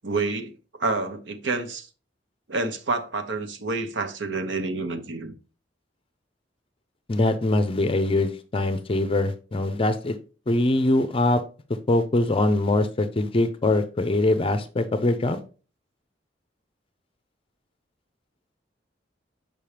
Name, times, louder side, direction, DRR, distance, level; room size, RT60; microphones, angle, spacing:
voice 1, 0.0-0.5 0.8-1.9 2.5-5.3, right 3 dB, 85° right, 0.9 m, -28 dB
voice 2, 7.1-10.2 10.5-11.4 11.9-15.4, left 2 dB, 30° left, 0.5 m, -23 dB
7.1 x 5.3 x 3.3 m
head